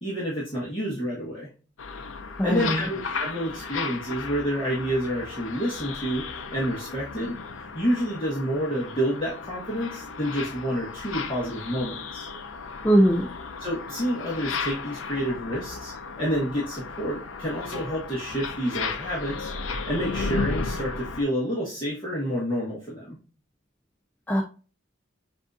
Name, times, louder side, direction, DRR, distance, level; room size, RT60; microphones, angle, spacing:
voice 1, 0.0-1.5 2.4-12.3 13.6-23.2, equal, 25° left, -6 dB, 1.3 m, -29 dB
sound 1, 1.8-21.2, left 4 dB, 70° left, 0.6 m, -35 dB
voice 2, 2.4-2.8 12.8-13.3 24.3-24.4, right 1 dB, 10° left, 3 dB, 0.4 m, -20 dB
7.1 x 2.7 x 2.3 m, 0.36 s
head